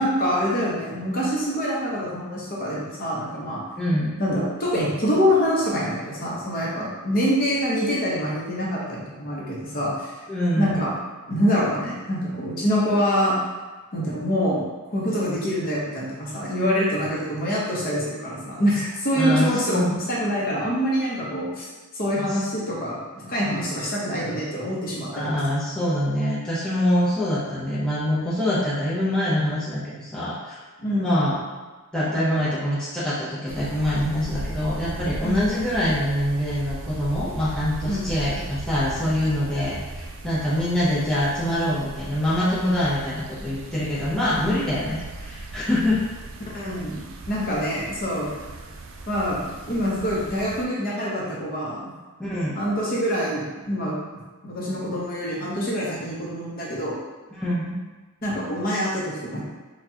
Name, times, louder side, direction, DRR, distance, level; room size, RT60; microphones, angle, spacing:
voice 1, 0.0-3.6 4.2-10.2 10.6-10.9 11.2-13.4 13.9-14.6 14.9-21.7 21.9-25.4 30.8-31.3 35.2-35.4 37.9-38.0 46.4-48.3 49.1-51.8 52.5-54.0 54.4-56.9 58.2-59.4, equal, 40° left, -5 dB, 0.8 m, -25 dB
voice 2, 3.8-4.1 10.3-10.8 19.2-19.9 25.1-30.6 31.0-31.4 31.9-46.0 52.2-52.5 57.4-57.8, left 1 dB, 5° left, -10 dB, 0.6 m, -24 dB
sound 1, 33.5-50.6, right 2 dB, 60° right, 0.4 m, -37 dB
4.4 x 2.3 x 2.8 m, 1.3 s
head